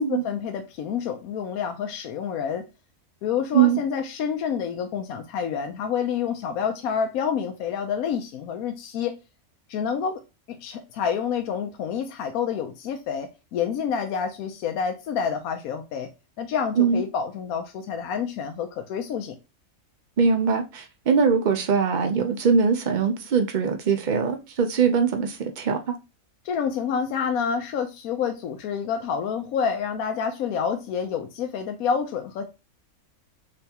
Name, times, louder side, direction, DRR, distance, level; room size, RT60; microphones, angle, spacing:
voice 1, 0.0-2.7 3.2-9.2 9.7-10.2 10.5-16.1 16.4-19.4 26.4-32.4, left 7 dB, 80° left, 1.0 m, -28 dB
voice 2, 20.2-25.9, right 6 dB, 60° right, 0.5 m, -22 dB
3.9 x 3.4 x 2.8 m
omnidirectional pair, 1.5 m